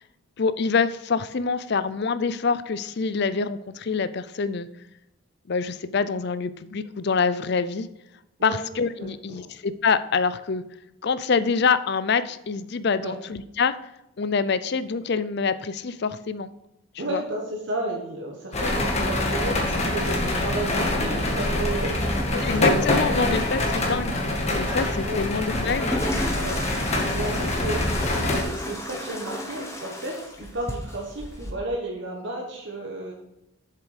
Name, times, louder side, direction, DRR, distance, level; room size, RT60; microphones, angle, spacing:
voice 1, 0.4-4.7 5.5-7.9 8.4-10.6 11.0-13.8 14.2-16.5 17.1-17.2 22.4-24.2 24.6-26.0, left 5 dB, 50° left, 14 dB, 0.5 m, -25 dB
voice 2, 9.0-9.4 13.0-13.2 17.0-23.3 25.0-25.7 26.4-26.9 27.1-33.1, right 1 dB, 55° right, -1 dB, 1.4 m, -33 dB
sound 1, 18.5-28.4, left 1 dB, 30° left, 1.6 m, -25 dB
sound 2, 25.5-31.5, left 1 dB, 15° left, 1.2 m, -33 dB
7.5 x 7.1 x 5.0 m, 0.85 s
head